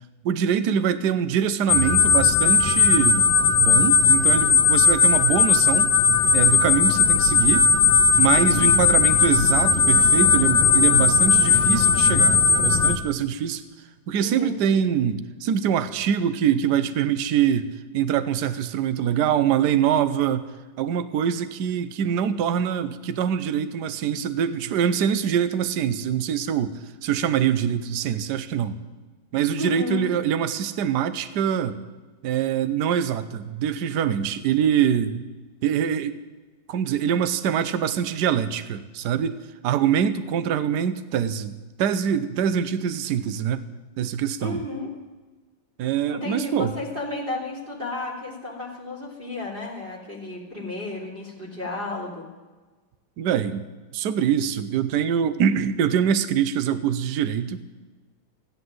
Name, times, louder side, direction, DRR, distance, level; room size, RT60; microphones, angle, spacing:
voice 1, 0.2-3.3 3.6-5.9 6.3-7.7 8.2-13.6 14.1-20.5 20.8-28.8 29.3-31.8 32.2-35.3 35.6-36.2 36.7-39.3 39.6-43.7 44.0-44.6 45.8-46.7 53.2-53.6 53.9-57.6, right 8 dB, 65° right, 12 dB, 1.3 m, -24 dB
sound 1, 1.7-13.0, left 5 dB, 65° left, 1.4 m, -18 dB
voice 2, 8.4-8.9 14.2-14.9 29.6-30.1 44.4-44.9 46.1-52.3, left 3 dB, 25° right, -1 dB, 3.4 m, -33 dB
14.0 x 10.5 x 7.8 m, 1.3 s
omnidirectional pair, 2.1 m